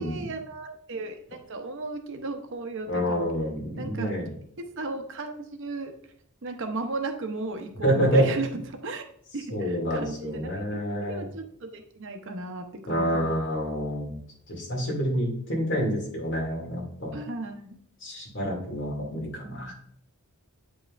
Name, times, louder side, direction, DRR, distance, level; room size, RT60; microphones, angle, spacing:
voice 1, 0.0-3.3 3.8-4.2 4.6-6.0 6.4-9.0 9.3-13.4 17.1-17.8, right 2 dB, 55° right, 6 dB, 0.7 m, -35 dB
voice 2, 2.9-4.3 7.8-8.3 9.5-11.2 12.9-14.2 14.5-17.2 18.0-19.7, equal, 55° left, -2 dB, 2.3 m, -27 dB
8.7 x 5.3 x 2.5 m, 0.66 s
head